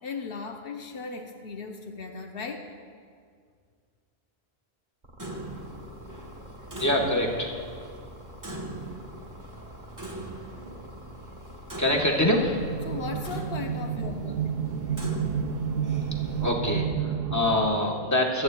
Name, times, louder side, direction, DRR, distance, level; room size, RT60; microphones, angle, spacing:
voice 1, 0.0-2.7 12.8-15.5, left 4 dB, 70° left, 4 dB, 0.9 m, -38 dB
sound 1, 5.0-13.2, equal, 45° right, 1.4 m, -46 dB
Clock, 5.2-16.5, right 1 dB, 20° right, 0.9 m, -42 dB
voice 2, 6.8-7.5 11.8-12.8 16.4-18.4, left 1 dB, 15° left, -1 dB, 1.1 m, -25 dB
sound 2, 12.4-17.7, right 7 dB, 65° right, 0.8 m, -30 dB
24.5 x 8.8 x 2.2 m, 2.1 s
omnidirectional pair, 1.0 m